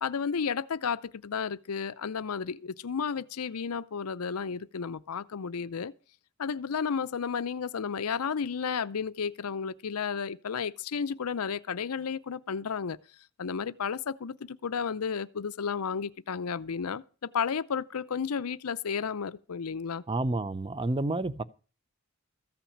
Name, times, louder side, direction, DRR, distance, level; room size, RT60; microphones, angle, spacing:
voice 1, 0.0-5.9 6.4-13.0 13.4-20.0, left 6 dB, 90° left, 0.6 m, -32 dB
voice 2, 20.1-21.4, right 2 dB, 25° right, 0.5 m, -29 dB
14.5 x 5.9 x 8.5 m
head